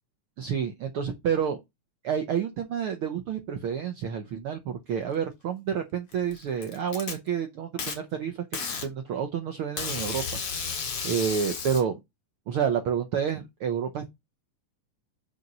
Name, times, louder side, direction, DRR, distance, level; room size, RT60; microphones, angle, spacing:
voice 1, 0.4-1.6 2.0-8.4 8.8-12.0 12.5-14.1, right 7 dB, 90° right, 1.1 m, -29 dB
Packing tape duct tape, 6.1-7.1 7.8-8.0 8.5-8.9 9.8-11.8, left 5 dB, 50° left, 2.4 m, -32 dB
6.7 x 4.3 x 5.3 m
omnidirectional pair, 3.6 m